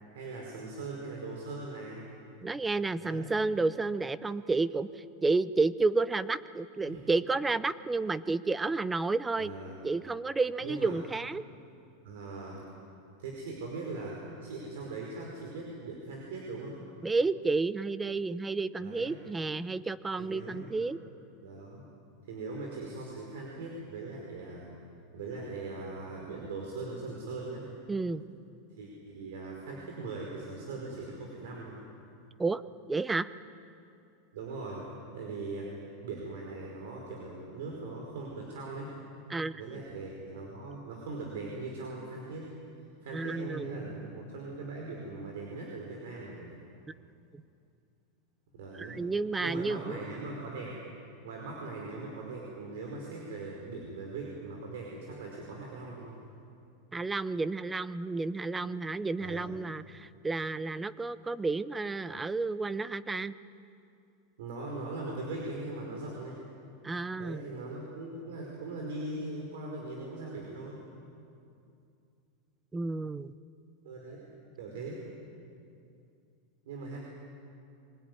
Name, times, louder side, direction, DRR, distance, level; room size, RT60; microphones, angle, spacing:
voice 1, 0.1-2.0 3.0-3.3 6.8-7.1 9.4-9.8 10.6-11.0 12.0-12.6 13.2-16.8 18.8-19.2 20.2-20.8 21.4-21.9 22.2-24.7 25.1-27.7 28.7-31.8 34.3-34.8 35.1-35.7 36.0-38.9 39.5-42.5 43.0-46.6 48.5-49.0 49.4-50.8 51.2-56.2 59.2-59.6 64.4-66.4 67.1-70.8 73.8-74.3 74.6-75.0 76.6-77.0, right 3 dB, 80° right, -1 dB, 5.1 m, -40 dB
voice 2, 2.4-4.9 5.2-9.5 9.8-11.4 17.0-21.0 27.9-28.2 32.4-32.6 32.9-33.3 39.3-39.8 43.1-44.1 47.3-47.4 48.7-50.0 56.9-63.3 66.8-67.4 72.7-73.3, right 3 dB, 10° right, 16 dB, 0.6 m, -31 dB
24.0 x 20.0 x 9.7 m, 2.5 s
supercardioid pair, 150°, 0 cm